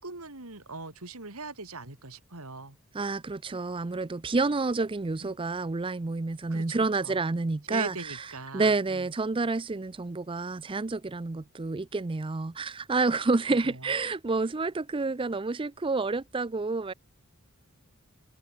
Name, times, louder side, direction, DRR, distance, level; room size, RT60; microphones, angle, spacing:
voice 1, 0.0-2.8 5.2-5.3 6.5-6.8 7.0-7.2 7.7-9.1 13.5-13.9, right 3 dB, 75° right, 3.6 m, -41 dB
voice 2, 2.9-8.2 8.5-16.9, right 3 dB, 25° right, 0.5 m, -29 dB
head